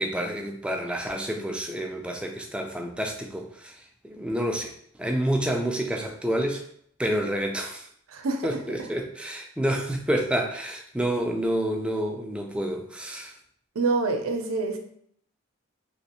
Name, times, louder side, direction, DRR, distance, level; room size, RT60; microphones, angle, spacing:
voice 1, 0.0-3.7 4.0-4.7 5.0-6.6 7.0-7.8 8.4-13.3, right 1 dB, 5° right, 2 dB, 0.3 m, -28 dB
voice 2, 8.1-8.5 8.8-8.9 13.7-14.8, right 3 dB, 85° right, 4 dB, 0.5 m, -26 dB
3.1 x 2.9 x 2.9 m, 0.65 s
head